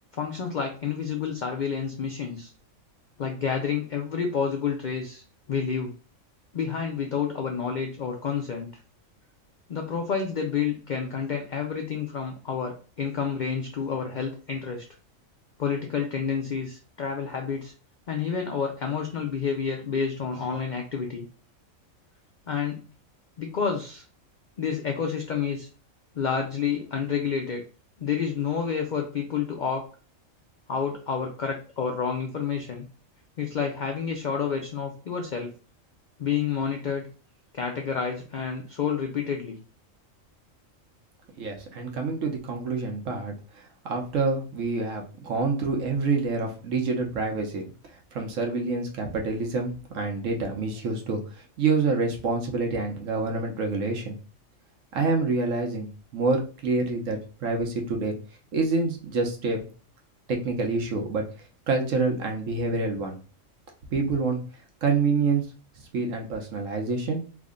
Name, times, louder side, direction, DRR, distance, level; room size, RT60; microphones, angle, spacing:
voice 1, 0.1-2.5 3.2-5.9 6.5-8.7 9.7-14.8 15.6-17.7 18.1-21.3 22.5-22.8 23.4-24.0 24.6-25.7 26.1-27.6 28.0-29.9 30.7-32.9 33.4-35.5 36.2-37.1 37.5-39.6, left 6 dB, 80° left, 3 dB, 0.4 m, -29 dB
voice 2, 41.4-43.3 43.8-47.7 48.1-51.2 51.6-54.2 54.9-55.9 56.1-58.1 58.5-59.7 60.3-61.2 61.7-63.2 63.9-64.4 64.8-65.4 65.9-67.2, right 4 dB, 70° right, 2 dB, 1.1 m, -27 dB
3.5 x 2.1 x 3.6 m, 0.36 s
omnidirectional pair, 1.4 m